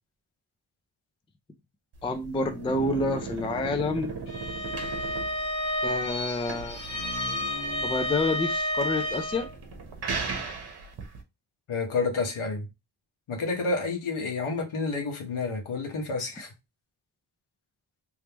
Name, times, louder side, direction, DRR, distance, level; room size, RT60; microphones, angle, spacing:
sound 1, 1.9-11.2, right 4 dB, 50° right, 1.1 m, -37 dB
voice 1, 2.0-4.1 5.8-6.8 7.8-9.5, left 2 dB, 10° left, 0.3 m, -28 dB
Bowed string instrument, 4.2-9.5, left 1 dB, 40° left, 1.9 m, -31 dB
voice 2, 11.7-12.7 13.3-16.5, left 3 dB, 75° left, 1.3 m, -29 dB
3.5 x 3.1 x 2.9 m
wide cardioid pair, 145°, 50 cm